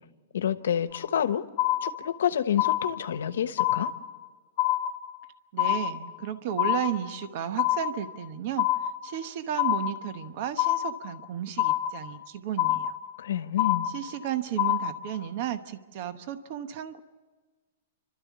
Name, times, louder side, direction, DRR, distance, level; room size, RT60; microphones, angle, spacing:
voice 1, 0.3-1.4 1.8-3.9 13.2-13.9, left 9 dB, 85° left, 10 dB, 1.2 m, -28 dB
sound 1, 0.9-1.3 1.6-2.3 2.6-3.3 3.6-4.3 4.6-5.3 5.6-6.3 6.6-7.3 7.6-8.3 8.6-9.3 9.6-10.3 10.6-11.3 11.6-12.3 12.6-13.3 13.6-14.3 14.6-15.3, left 14 dB, 35° left, 0.8 m, -27 dB
voice 2, 5.5-8.7 9.0-13.0 13.9-17.0, right 10 dB, 40° right, 10 dB, 1.0 m, -33 dB
29.0 x 13.0 x 8.4 m, 1.4 s
hypercardioid pair, 175°, 0 cm